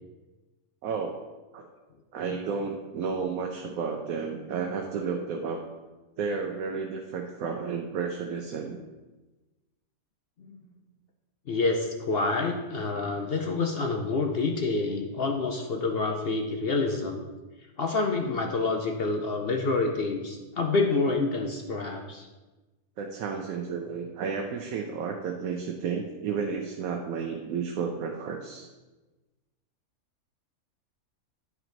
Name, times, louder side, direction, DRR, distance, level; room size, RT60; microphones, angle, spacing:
voice 1, 0.8-1.2 1.5-1.6 2.1-5.6 6.2-8.8 23.0-28.7, right 5 dB, 75° right, 2 dB, 1.1 m, -32 dB
voice 2, 11.5-17.2 17.8-22.3, left 3 dB, 55° left, 3 dB, 0.7 m, -27 dB
9.4 x 4.5 x 3.9 m, 1.2 s
omnidirectional pair, 1.5 m